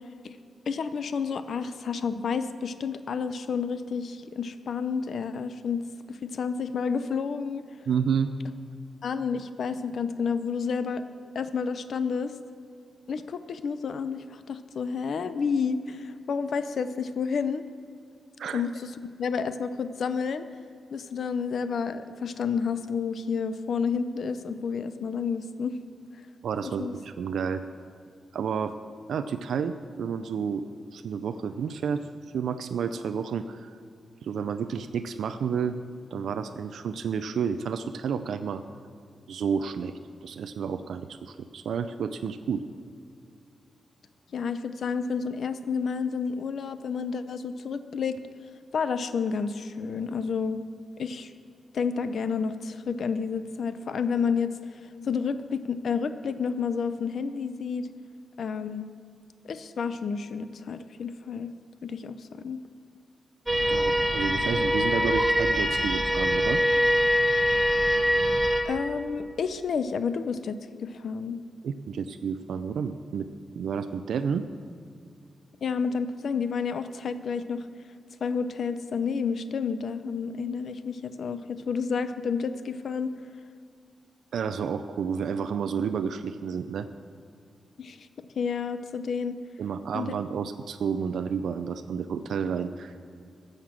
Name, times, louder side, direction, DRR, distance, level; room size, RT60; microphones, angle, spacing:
voice 1, 0.7-7.6 9.0-11.0 11.3-12.3 13.1-17.6 18.5-18.9 19.2-20.5 20.9-25.8 26.8-26.9 44.3-48.2 48.7-50.6 51.0-51.3 51.7-54.5 55.0-57.9 58.4-58.9 59.5-61.5 61.8-62.6 68.6-71.4 75.6-77.7 78.2-83.1 87.8-88.1 88.4-89.4 89.9-90.1, left 5 dB, 60° left, 11 dB, 0.5 m, -30 dB
voice 2, 7.9-8.3 18.4-18.6 26.4-27.6 28.3-28.7 29.1-30.7 30.9-32.1 32.3-33.7 34.2-35.8 36.1-38.6 39.3-39.9 40.2-42.6 63.7-66.6 71.6-73.3 73.6-74.4 84.3-86.9 89.6-93.0, right 6 dB, 80° right, 9 dB, 0.4 m, -30 dB
sound 1, 63.5-68.6, equal, 5° right, 0.9 m, -23 dB
15.0 x 6.6 x 7.5 m, 2.4 s
wide cardioid pair, 145°, 0 cm